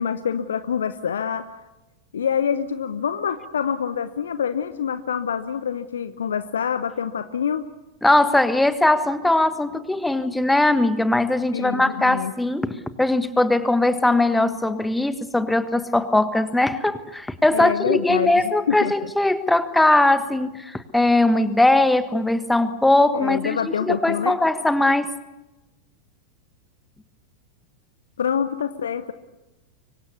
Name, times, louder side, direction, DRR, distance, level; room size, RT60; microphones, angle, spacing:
voice 1, 0.0-1.6 2.1-7.7 11.5-12.3 17.5-18.9 23.1-24.4 28.2-29.1, left 7 dB, 65° left, 13 dB, 0.9 m, -26 dB
voice 2, 8.0-25.1, left 2 dB, 5° left, 13 dB, 1.4 m, -20 dB
25.0 x 23.5 x 7.0 m, 1.0 s
figure-of-eight pair, 90°, 0 cm